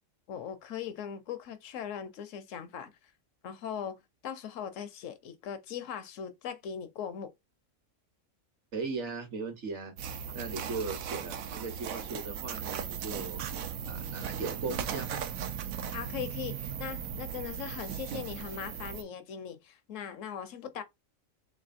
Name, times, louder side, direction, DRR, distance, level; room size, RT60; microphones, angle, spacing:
voice 1, 0.3-2.9 3.4-7.3 15.9-20.8, left 8 dB, 70° left, 0.9 m, -40 dB
voice 2, 8.7-13.4 13.9-15.2, right 4 dB, 60° right, 1.2 m, -38 dB
sound 1, 10.0-19.0, right 8 dB, 90° right, 1.0 m, -37 dB
3.6 x 3.2 x 2.5 m
omnidirectional pair, 1.4 m